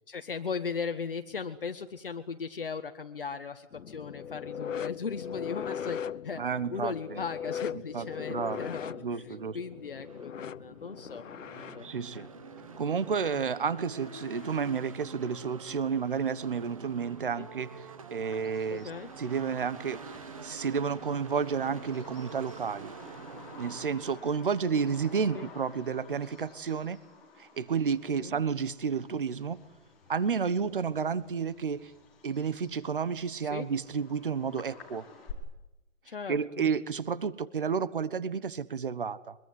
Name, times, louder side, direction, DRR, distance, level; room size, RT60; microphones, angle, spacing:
voice 1, 0.1-9.3 9.5-11.9 12.2-12.3 17.4-17.5 18.7-19.1 25.3-25.5 28.1-28.4 33.4-33.7 36.0-36.7, left 5 dB, 45° left, 7 dB, 1.3 m, -38 dB
sound 1, 3.7-14.7 16.0-16.2 17.1-17.2, left 8 dB, 75° left, 0.9 m, -40 dB
sound 2, 6.4-24.2, right 5 dB, 25° right, 1.4 m, -48 dB
voice 2, 6.4-7.2 7.9-8.7 9.0-9.6 11.8-12.3 12.8-18.9 19.2-20.2 20.4-22.9 23.6-27.0 27.4-29.6 30.1-31.9 32.2-35.0 36.3-39.4, right 6 dB, 40° right, 17 dB, 1.2 m, -31 dB
Bird vocalization bird call bird song, 18.3-35.3, left 5 dB, ahead, 1.2 m, -52 dB
24.0 x 23.0 x 9.3 m, 0.97 s
hypercardioid pair, 180°, 39 cm